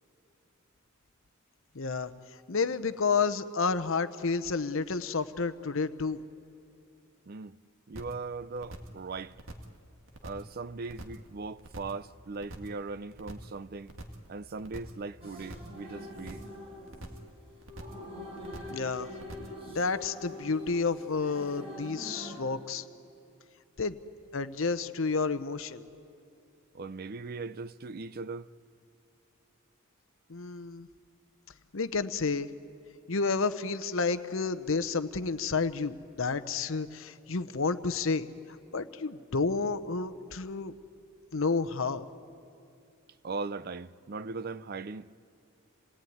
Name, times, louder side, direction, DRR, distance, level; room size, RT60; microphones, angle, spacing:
voice 1, 1.7-2.1 2.5-6.2 18.7-19.1 19.7-22.8 23.8-24.0 24.3-25.8 30.3-30.9 31.7-32.5 33.1-38.3 38.7-40.7 41.3-42.0, left 4 dB, 65° left, 0.8 m, -30 dB
voice 2, 7.3-7.6 7.9-9.3 10.2-14.0 14.3-16.4 26.7-28.5 43.2-45.2, right 3 dB, 45° right, 0.5 m, -39 dB
sound 1, 7.9-8.2 8.5-9.0 9.3-9.8 10.1-10.5 10.8-11.3 11.6-12.0 12.3-12.8 13.1-13.6 13.9-14.3 14.6-15.0 15.3-15.8 16.1-16.6 16.9-17.3 17.6-18.1 18.4-18.8 19.1-19.6, right 1 dB, 65° right, 1.9 m, -45 dB
sound 2, 15.2-22.4, left 1 dB, 30° right, 5.5 m, -44 dB
27.5 x 18.5 x 9.4 m
head